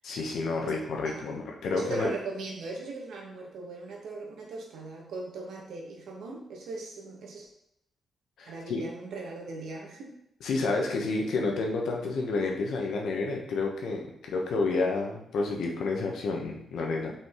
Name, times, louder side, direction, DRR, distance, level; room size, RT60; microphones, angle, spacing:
voice 1, 0.0-2.1 8.4-8.8 10.4-17.1, left 3 dB, 90° left, 1 dB, 1.3 m, -30 dB
voice 2, 0.6-1.3 1.7-7.5 8.5-10.1, right 3 dB, 90° right, 0 dB, 1.5 m, -39 dB
5.5 x 5.1 x 3.8 m, 0.78 s
wide cardioid pair, 140°, 0 cm